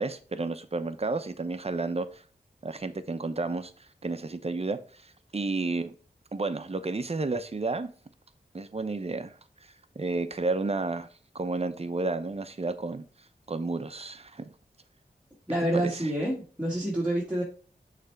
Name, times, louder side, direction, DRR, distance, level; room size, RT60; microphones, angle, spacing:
voice 1, 0.0-2.2 2.6-3.7 4.0-5.0 5.3-5.9 6.3-7.9 8.5-9.4 10.0-11.1 11.3-13.0 13.5-14.4 15.8-16.0, right 3 dB, 40° right, 0.7 m, -31 dB
voice 2, 15.5-17.4, right 1 dB, 5° right, 1.6 m, -28 dB
6.5 x 3.3 x 4.6 m
cardioid pair, 50°, 17 cm